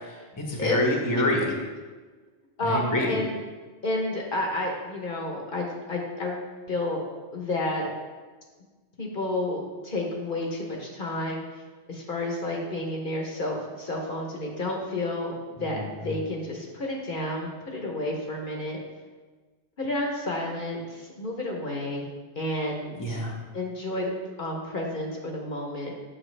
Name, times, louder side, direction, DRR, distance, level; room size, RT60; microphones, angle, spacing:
voice 1, 0.0-1.5 2.6-3.1 15.7-15.8 23.0-23.3, left 1 dB, 20° left, 0 dB, 0.9 m, -26 dB
voice 2, 2.6-3.4 3.8-6.4 6.7-7.0 7.3-7.9 9.0-11.4 11.9-18.8 19.8-22.1 22.4-23.2 23.5-24.1 24.4-26.0, left 1 dB, 55° left, 0 dB, 1.0 m, -30 dB
7.7 x 5.7 x 3.2 m, 1.4 s
omnidirectional pair, 1.1 m